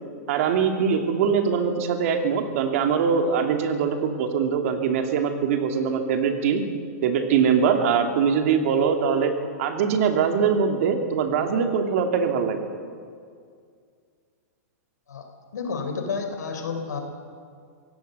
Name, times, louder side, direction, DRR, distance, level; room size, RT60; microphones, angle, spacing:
voice 1, 0.3-6.6 7.0-9.3 9.6-12.7, right 6 dB, 55° right, 4 dB, 2.7 m, -22 dB
voice 2, 15.5-17.0, left 5 dB, 90° left, 5 dB, 4.1 m, -30 dB
24.0 x 17.0 x 6.9 m, 2.2 s
hypercardioid pair, 145°, 9 cm